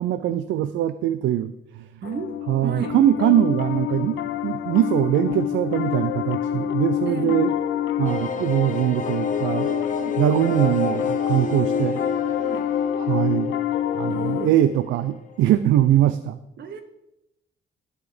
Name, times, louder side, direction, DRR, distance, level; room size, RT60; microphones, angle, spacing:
voice 1, 0.0-1.9 2.5-7.5 8.0-9.7 10.2-12.0 13.0-13.6 13.9-16.4, right 12 dB, 75° right, 13 dB, 0.4 m, -22 dB
Piano, 2.0-14.5, left 10 dB, 75° left, 0.6 m, -27 dB
voice 2, 2.0-2.3 2.6-3.0 7.0-7.4 10.0-10.2 12.4-12.7 14.1-14.5 16.6-16.8, right 6 dB, 60° right, 10 dB, 1.0 m, -33 dB
sound 1, 8.0-15.5 15.8-15.9 16.1-16.2, left 5 dB, 40° left, 1.0 m, -30 dB
12.5 x 4.3 x 5.0 m, 0.92 s
cardioid pair, 90°, 20 cm